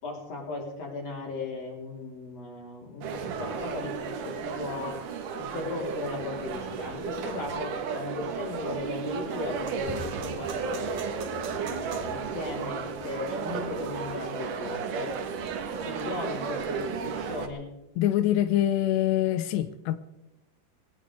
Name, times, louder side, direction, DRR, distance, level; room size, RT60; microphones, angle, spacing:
voice 1, 0.0-5.0 5.3-11.1 11.5-15.1 15.8-17.7, left 2 dB, 35° left, 4.3 m, -37 dB
sound 1, 3.0-17.5, right 6 dB, 70° right, 2.0 m, -34 dB
voice 2, 18.0-20.0, left 12 dB, 85° left, 2.4 m, -25 dB
21.5 x 18.0 x 3.5 m
omnidirectional pair, 5.8 m